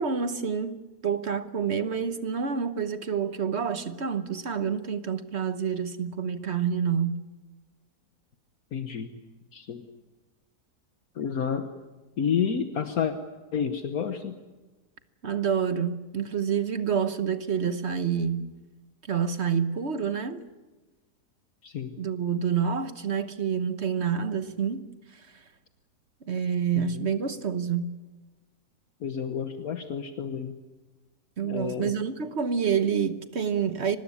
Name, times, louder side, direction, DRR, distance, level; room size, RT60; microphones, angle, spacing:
voice 1, 0.0-7.2 15.2-18.5 19.1-20.4 22.0-24.8 25.1-25.3 26.3-27.9 31.4-34.0, right 7 dB, 45° right, 1.3 m, -28 dB
voice 2, 8.7-9.2 9.5-9.8 11.1-11.7 12.2-13.2 13.5-14.4 21.6-22.0 26.8-27.1 29.0-30.5 31.4-31.9, left 7 dB, 65° left, 1.6 m, -30 dB
24.5 x 19.5 x 9.9 m
omnidirectional pair, 1.7 m